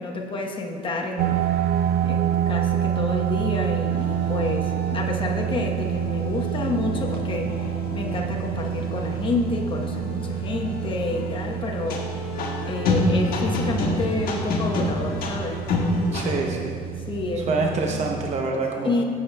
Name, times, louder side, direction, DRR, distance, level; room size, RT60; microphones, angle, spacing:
voice 1, 0.0-1.4 2.0-12.1 12.6-15.7 17.1-18.0 18.8-19.0, left 2 dB, 30° left, 0 dB, 1.0 m, -29 dB
sound 1, 1.2-18.4, right 10 dB, 65° right, 0.4 m, -28 dB
sound 2, 3.9-16.3, left 2 dB, 60° left, 1.5 m, -29 dB
voice 2, 16.1-16.8 17.4-19.0, right 3 dB, 40° right, 1 dB, 0.8 m, -26 dB
14.0 x 7.0 x 2.2 m, 2.2 s
cardioid pair, 110°, 17 cm